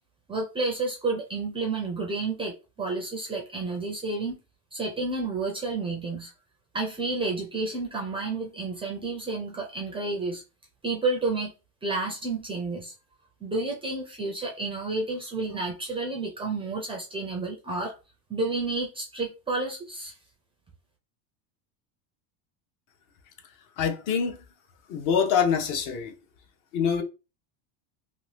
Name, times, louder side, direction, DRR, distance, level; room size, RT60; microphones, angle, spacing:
voice 1, 0.3-4.4 4.7-6.3 6.7-10.4 10.8-11.5 11.8-12.9 13.4-18.0 18.3-20.1, right 3 dB, 15° right, 0.4 m, -30 dB
voice 2, 23.8-24.4 24.9-26.1 26.7-27.0, left 7 dB, 45° left, 0.7 m, -25 dB
2.7 x 2.6 x 3.2 m
supercardioid pair, 145°, 46 cm